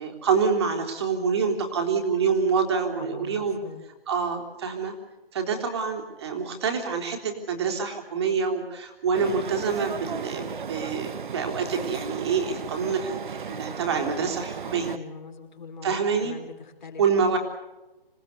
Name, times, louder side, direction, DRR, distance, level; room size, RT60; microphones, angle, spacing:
voice 1, 0.0-3.6 4.1-4.9 5.3-14.9 15.8-16.3 17.0-17.4, right 5 dB, 25° right, 4 dB, 3.6 m, -26 dB
voice 2, 3.0-3.8 14.9-17.0, left 5 dB, 50° left, 3 dB, 5.4 m, -42 dB
sound 1, 9.1-15.0, right 6 dB, 55° right, 0.9 m, -35 dB
27.0 x 19.0 x 8.3 m, 1.0 s
hypercardioid pair, 170°, 30 cm